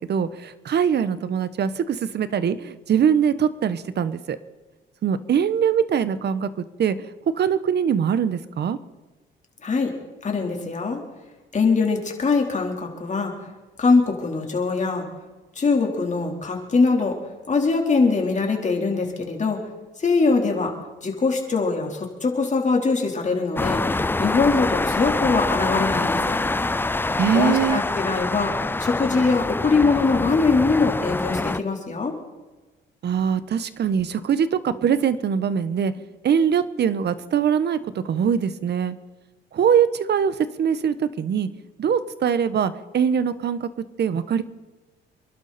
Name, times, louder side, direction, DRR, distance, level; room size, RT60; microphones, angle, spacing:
voice 1, 0.0-4.4 5.0-7.1 7.3-8.8 27.2-27.8 33.0-35.9 36.2-39.0 39.5-41.5 41.8-44.4, right 7 dB, 60° right, 13 dB, 1.3 m, -22 dB
voice 2, 9.6-9.9 10.2-11.0 11.5-13.3 13.8-15.1 15.6-17.2 17.5-19.6 20.0-20.7 21.0-23.8 24.2-26.4 27.3-28.5 28.8-32.1, left 4 dB, 35° left, 1 dB, 4.0 m, -22 dB
sound 1, 23.6-31.6, left 2 dB, 10° left, 0.5 m, -25 dB
27.5 x 12.0 x 4.4 m, 1.2 s
cardioid pair, 90°, 20 cm